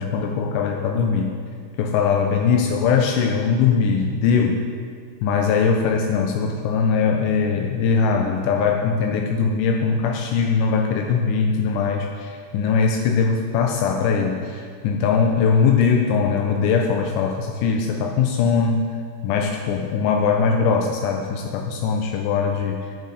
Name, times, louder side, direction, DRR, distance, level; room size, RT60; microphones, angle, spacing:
voice 1, 0.0-1.4 1.8-4.6 5.2-18.9 19.2-22.8, left 5 dB, 45° left, 3 dB, 0.8 m, -21 dB
11.0 x 5.6 x 6.7 m, 2.1 s
figure-of-eight pair, 90°, 0 cm